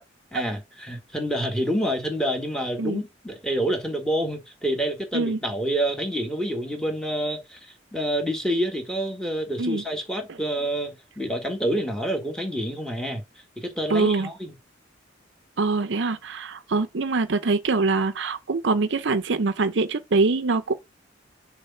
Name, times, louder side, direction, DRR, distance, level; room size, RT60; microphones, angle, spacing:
voice 1, 0.3-13.2 13.6-14.5, equal, 5° left, 1.7 m, -28 dB
voice 2, 13.9-14.3 15.6-20.7, right 3 dB, 65° right, 0.7 m, -24 dB
6.6 x 3.5 x 5.6 m
head